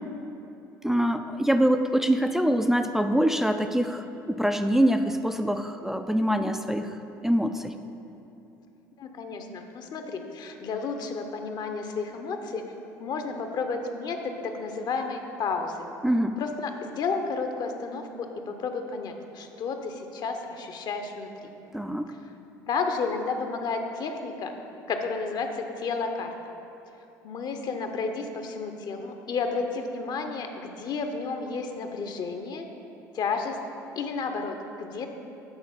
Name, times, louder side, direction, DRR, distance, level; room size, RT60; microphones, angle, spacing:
voice 1, 0.8-7.0 7.2-7.8 16.0-16.4 21.7-22.1, equal, 5° right, 6 dB, 0.4 m, -24 dB
voice 2, 9.0-12.6 13.0-15.9 16.4-21.5 22.7-24.5 24.9-26.3 27.2-32.7 33.1-33.6 34.0-35.1, left 4 dB, 50° left, 5 dB, 0.8 m, -32 dB
8.9 x 4.2 x 5.5 m, 3.0 s
hypercardioid pair, 60°, 9 cm